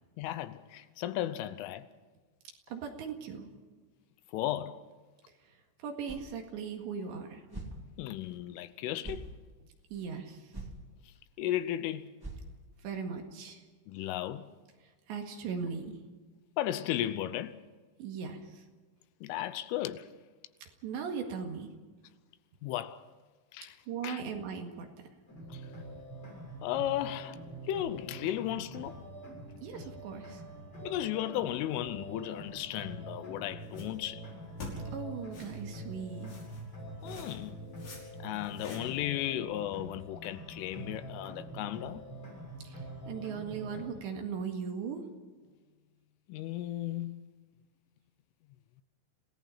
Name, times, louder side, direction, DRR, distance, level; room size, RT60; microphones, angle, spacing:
voice 1, 0.2-1.9 4.3-4.8 8.0-9.3 11.4-12.1 13.9-14.5 16.6-17.6 19.2-20.1 22.6-23.0 23.5-23.8 24.0-24.2 25.5-25.6 26.6-27.4 27.6-29.0 30.8-34.2 37.0-37.6 38.2-42.0 46.3-47.2, left 13 dB, 80° left, 3.2 m, -35 dB
voice 2, 2.7-3.5 5.5-7.4 9.9-10.6 12.8-13.6 14.8-16.0 18.0-18.7 20.6-21.7 23.9-24.9 29.6-30.4 34.9-36.3 42.6-45.0, right 6 dB, 65° right, 3.9 m, -39 dB
sound 1, 6.1-6.3 6.7-6.8 7.5-7.8 8.3-8.4 9.0-9.3 9.9-10.0 10.5-10.8 11.1-11.2 11.6-11.7 12.2-12.8, right 2 dB, 25° right, 0.4 m, -43 dB
sound 2, 25.3-43.9, right 1 dB, 25° left, 6.8 m, -45 dB
sound 3, 33.6-34.1 34.6-34.7 35.3-35.6 36.2-36.6 37.0-37.5 37.8-38.0 38.3-39.1, left 3 dB, 45° left, 7.0 m, -46 dB
27.5 x 17.5 x 5.7 m
omnidirectional pair, 5.9 m